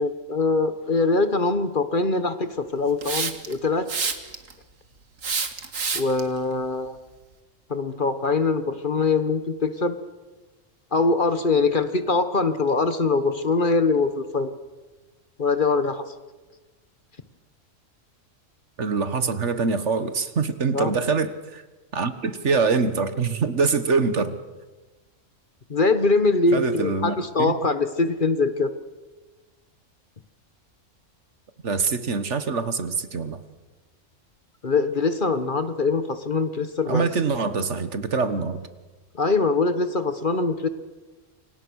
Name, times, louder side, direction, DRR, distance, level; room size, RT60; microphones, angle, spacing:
voice 1, 0.0-3.9 5.9-7.0 7.7-10.0 10.9-14.5 15.4-16.1 20.7-20.9 25.7-28.7 34.6-37.1 39.1-40.7, left 3 dB, 40° left, 11 dB, 1.3 m, -23 dB
Hiss, 3.0-3.5 3.9-4.5 5.2-6.2, right 5 dB, 90° right, 2.1 m, -27 dB
voice 2, 18.8-21.6 21.9-24.4 26.5-27.6 31.6-33.4 36.9-38.6, right 4 dB, 65° right, 11 dB, 1.7 m, -24 dB
28.5 x 24.5 x 6.4 m, 1.2 s
omnidirectional pair, 1.3 m